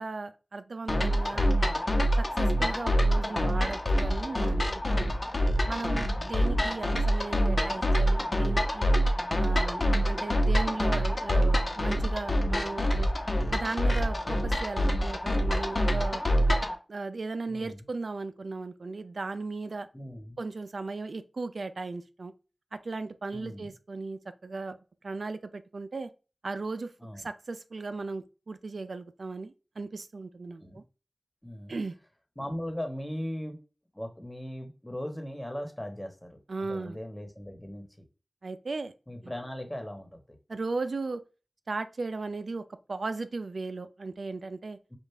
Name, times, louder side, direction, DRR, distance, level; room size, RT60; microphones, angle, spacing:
voice 1, 0.0-1.7 2.2-5.1 5.7-8.9 9.4-13.1 13.5-16.2 16.9-19.9 20.4-22.3 22.7-24.8 25.0-26.1 26.4-30.8 31.7-31.9 36.5-37.0 38.4-38.9 40.5-41.2 41.7-44.8, right 3 dB, 85° right, 0.4 m, -36 dB
sound 1, 0.9-16.7, equal, 55° left, 0.9 m, -26 dB
voice 2, 1.3-1.6 4.8-5.2 5.9-6.3 16.3-16.6 17.5-17.8 19.9-20.4 23.3-23.7 27.0-27.2 30.6-30.8 31.4-31.7 32.3-33.6 33.9-37.9 39.1-40.2 44.9-45.0, equal, 15° left, 1.4 m, -39 dB
5.3 x 2.5 x 3.3 m
wide cardioid pair, 45°, 0 cm